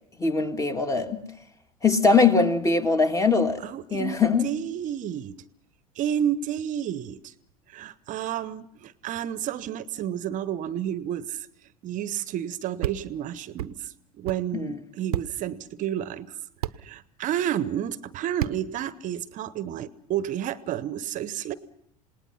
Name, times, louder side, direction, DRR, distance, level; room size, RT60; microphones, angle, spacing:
voice 1, 0.2-1.3 1.8-3.6 3.9-4.5 14.5-14.8, left 4 dB, 15° left, 1.9 m, -22 dB
voice 2, 3.6-5.4 6.0-7.3 7.7-11.5 11.8-16.4 16.8-21.5, right 10 dB, 40° right, 0.9 m, -31 dB
sound 1, 12.8-13.0 13.6-13.7 14.2-14.4 15.1-15.3 16.6-16.8 18.4-18.6, right 12 dB, 75° right, 0.8 m, -29 dB
28.0 x 19.0 x 5.7 m
hypercardioid pair, 80°, 20 cm